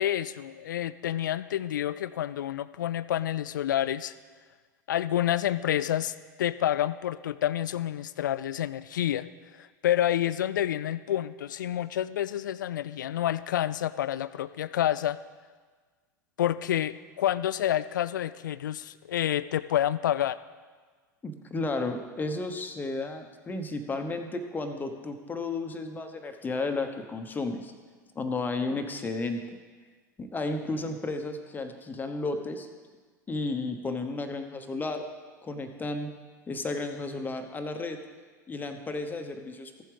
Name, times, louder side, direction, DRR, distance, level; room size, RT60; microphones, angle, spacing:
voice 1, 0.0-4.1 4.9-9.3 9.6-15.2 16.4-20.4, left 11 dB, 70° left, 16 dB, 0.4 m, -28 dB
voice 2, 21.2-27.7 28.1-29.4 30.2-32.7 33.3-35.0 35.4-36.1 36.5-38.0 38.5-39.8, left 3 dB, 15° left, 6 dB, 1.1 m, -33 dB
15.0 x 7.6 x 3.4 m, 1.5 s
figure-of-eight pair, 85°, 10 cm